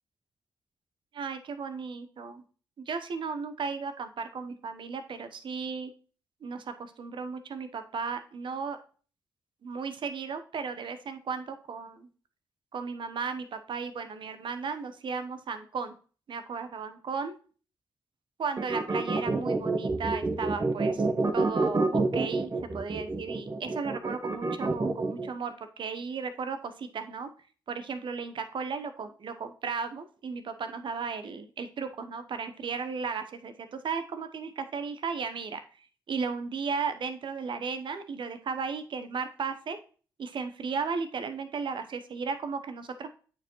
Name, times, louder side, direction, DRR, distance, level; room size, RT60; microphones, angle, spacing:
voice 1, 1.1-2.4 2.8-5.9 6.4-8.8 9.6-12.1 12.7-16.0 16.3-17.3 18.4-21.1 21.3-27.3 27.7-35.6 36.1-39.8 40.2-43.1, right 5 dB, 60° right, 9 dB, 0.8 m, -35 dB
sound 1, 18.6-25.3, right 3 dB, 35° right, 1.0 m, -28 dB
8.5 x 4.7 x 3.0 m, 0.39 s
hypercardioid pair, 40°, 9 cm